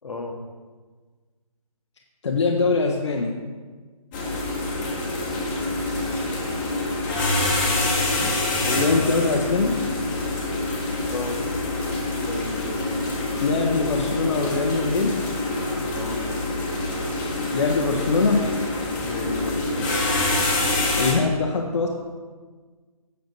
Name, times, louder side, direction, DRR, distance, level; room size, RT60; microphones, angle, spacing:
voice 1, 0.0-0.4 8.6-9.0 11.1-11.4 12.2-13.1 15.9-16.3 19.0-20.0, left 3 dB, 75° left, 4 dB, 1.4 m, -32 dB
voice 2, 2.2-3.3 8.2-8.3 8.8-9.9 13.4-15.2 17.5-18.5 21.0-21.9, left 4 dB, 50° left, 0 dB, 0.9 m, -22 dB
sound 1, 4.1-21.1, left 2 dB, 15° left, 1.3 m, -26 dB
8.4 x 6.5 x 4.6 m, 1.4 s
hypercardioid pair, 160°, 19 cm